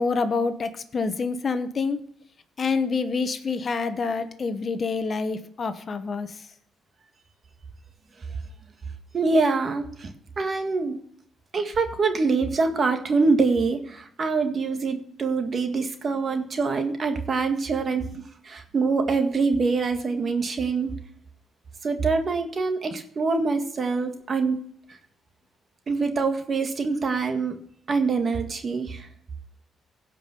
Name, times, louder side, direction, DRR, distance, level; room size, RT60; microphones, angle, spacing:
voice 1, 0.0-2.0 2.6-6.4, left 4 dB, 40° left, 10 dB, 1.1 m, -27 dB
voice 2, 9.1-10.1 10.4-11.0 11.5-20.9 21.8-24.6 25.9-27.6 27.9-29.1, right 4 dB, 45° right, 6 dB, 1.8 m, -25 dB
16.0 x 5.5 x 6.8 m, 0.65 s
cardioid pair, 90°, 0 cm